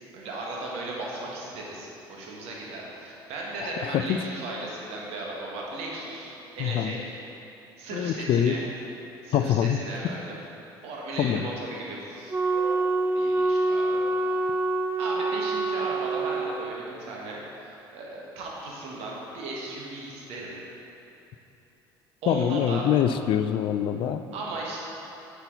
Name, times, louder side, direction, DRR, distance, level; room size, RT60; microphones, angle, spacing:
voice 1, 0.1-7.1 7.8-8.6 9.2-10.4 10.8-12.7 13.1-14.3 15.0-20.5 22.2-22.9 24.3-24.8, right 2 dB, 55° right, -3 dB, 1.8 m, -36 dB
voice 2, 3.6-4.2 6.6-7.0 7.9-8.6 9.3-9.9 11.2-11.5 22.3-24.2, left 9 dB, 45° left, 10 dB, 0.4 m, -25 dB
Wind instrument woodwind instrument, 12.3-16.6, right 2 dB, 15° right, 0.3 m, -26 dB
9.7 x 5.7 x 4.0 m, 2.9 s
figure-of-eight pair, 60°, 12 cm